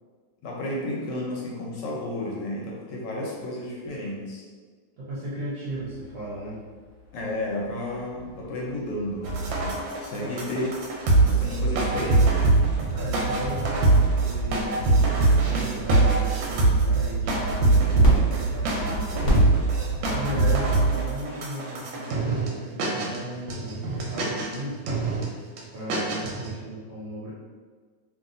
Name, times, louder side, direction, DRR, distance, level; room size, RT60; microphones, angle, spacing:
voice 1, 0.4-4.4 7.1-10.7 11.2-12.4, left 1 dB, 75° left, -4 dB, 1.2 m, -32 dB
voice 2, 5.0-6.6 10.2-10.4 12.9-19.5 20.1-24.8 25.7-27.3, right 1 dB, 65° right, -7 dB, 0.9 m, -36 dB
sound 1, 5.7-20.1, equal, 55° left, 0.9 m, -36 dB
sound 2, 9.2-22.5 22.8-23.2 23.5-24.6 24.9-25.3 25.6-25.7 25.9-26.5, right 3 dB, 90° right, 1.3 m, -23 dB
2.9 x 2.7 x 2.5 m, 1.5 s
omnidirectional pair, 2.1 m